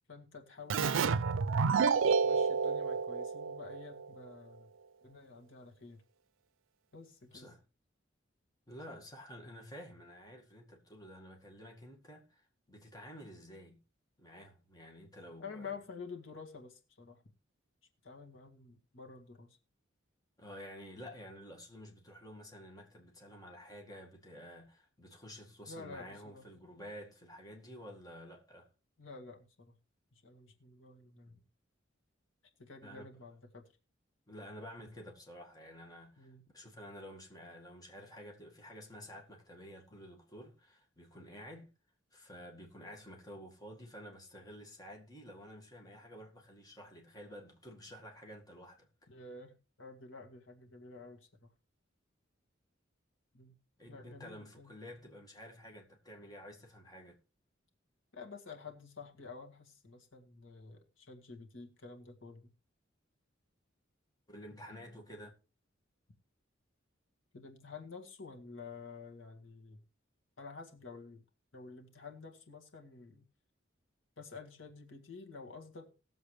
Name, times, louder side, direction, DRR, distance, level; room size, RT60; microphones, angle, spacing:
voice 1, 0.1-1.2 2.2-4.7 5.0-6.0 6.9-7.6 8.9-9.0 15.4-17.2 18.0-19.6 25.7-26.5 29.0-29.7 30.1-31.4 32.6-33.7 36.2-36.5 49.1-51.5 53.3-53.6 53.9-54.7 58.1-62.5 67.3-69.8 70.4-71.2 71.5-73.2 74.2-75.9, left 4 dB, 85° left, 1.9 m, -50 dB
Keyboard (musical), 0.7-4.1, right 5 dB, 85° right, 0.5 m, -30 dB
voice 2, 7.3-7.6 8.7-13.8 14.2-15.8 20.4-28.7 32.8-33.1 34.3-41.7 42.1-48.9 53.8-57.2 64.3-65.3, equal, 20° left, 1.9 m, -51 dB
19.0 x 7.3 x 3.3 m
head